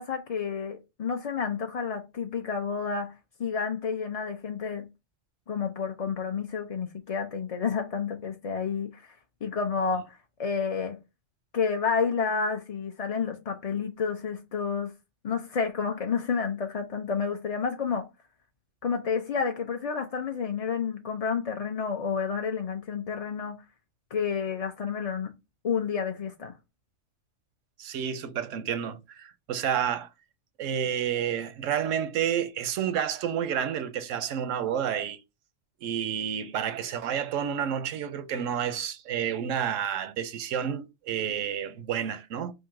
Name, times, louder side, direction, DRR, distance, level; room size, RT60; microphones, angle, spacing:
voice 1, 0.0-3.1 3.4-4.9 5.5-11.0 11.5-14.9 15.2-18.1 18.8-23.6 24.1-25.3 25.6-26.5, left 6 dB, 45° left, 0.5 m, -30 dB
voice 2, 27.8-30.1 30.6-35.2 35.8-42.5, right 9 dB, 90° right, 1.0 m, -30 dB
3.8 x 2.7 x 4.7 m
omnidirectional pair, 1.3 m